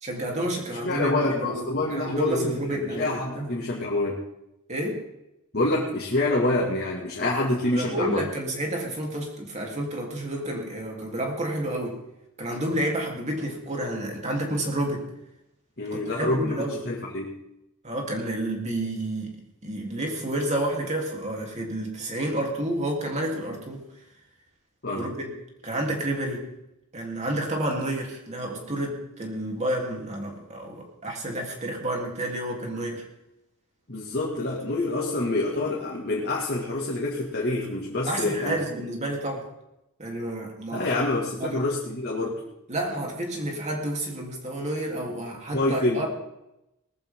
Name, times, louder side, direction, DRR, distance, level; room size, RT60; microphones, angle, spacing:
voice 1, 0.0-3.5 4.7-5.0 7.7-12.0 12.4-15.1 15.9-16.8 17.8-19.3 19.6-23.9 25.0-25.3 25.6-26.5 26.9-33.0 38.1-39.5 40.0-40.9 41.4-41.6 42.7-46.1, right 1 dB, 35° right, 0 dB, 3.4 m, -30 dB
voice 2, 0.7-4.2 5.5-8.2 15.8-17.4 24.8-25.1 33.9-38.6 40.7-42.4 45.5-46.1, left 2 dB, 50° left, -4 dB, 2.2 m, -27 dB
19.5 x 14.5 x 3.8 m, 0.88 s
head